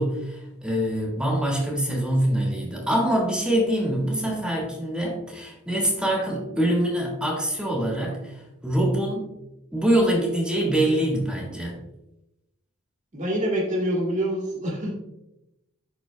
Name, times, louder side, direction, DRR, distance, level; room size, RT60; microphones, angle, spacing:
voice 1, 0.0-9.3 9.7-11.8, right 1 dB, 5° right, -3 dB, 1.6 m, -24 dB
voice 2, 13.1-14.9, right 1 dB, 40° right, -2 dB, 1.8 m, -26 dB
11.5 x 4.1 x 2.2 m, 0.89 s
head